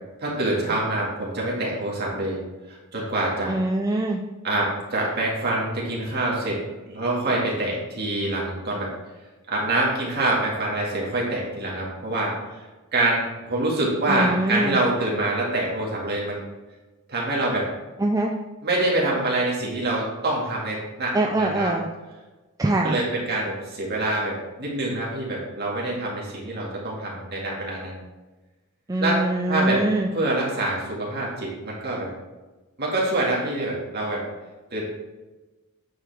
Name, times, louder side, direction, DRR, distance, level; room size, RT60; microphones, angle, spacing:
voice 1, 0.2-2.4 2.7-3.5 4.4-6.6 6.9-8.9 9.5-12.3 12.9-16.5 17.1-17.7 18.6-21.7 22.6-27.9 29.0-29.8 30.1-32.1 32.8-34.2 34.7-34.8, right 2 dB, 45° right, -4 dB, 2.0 m, -25 dB
voice 2, 3.5-4.2 14.1-14.8 18.0-18.3 21.1-21.9 22.6-23.0 28.9-30.1, right 2 dB, 15° right, 1 dB, 0.3 m, -23 dB
8.8 x 4.9 x 3.5 m, 1.2 s
head